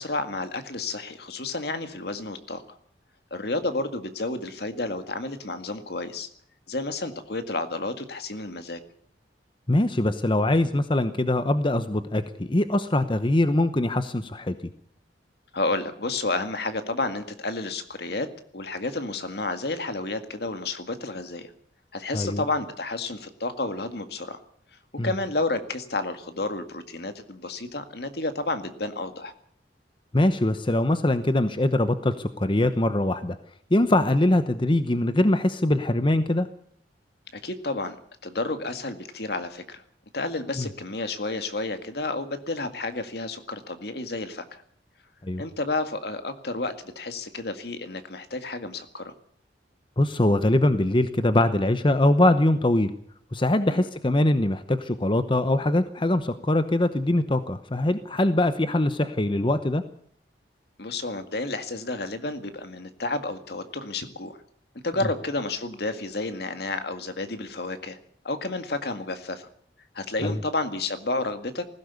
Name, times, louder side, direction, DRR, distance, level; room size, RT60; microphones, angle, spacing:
voice 1, 0.0-2.8 3.3-6.3 6.7-8.8 15.5-18.3 18.5-21.5 21.9-24.4 25.0-29.3 37.3-38.0 38.2-39.8 40.1-44.6 45.4-49.1 53.7-53.9 60.8-64.4 64.8-68.0 68.2-69.5 70.0-71.6, left 2 dB, 65° left, 9 dB, 2.0 m, -31 dB
voice 2, 9.7-14.6 22.1-22.4 25.0-25.1 30.1-33.4 33.7-36.5 40.6-40.7 45.2-45.4 50.0-52.9 53.3-59.8 70.2-70.4, left 1 dB, 30° left, 11 dB, 0.9 m, -22 dB
19.5 x 16.0 x 8.2 m, 0.63 s
head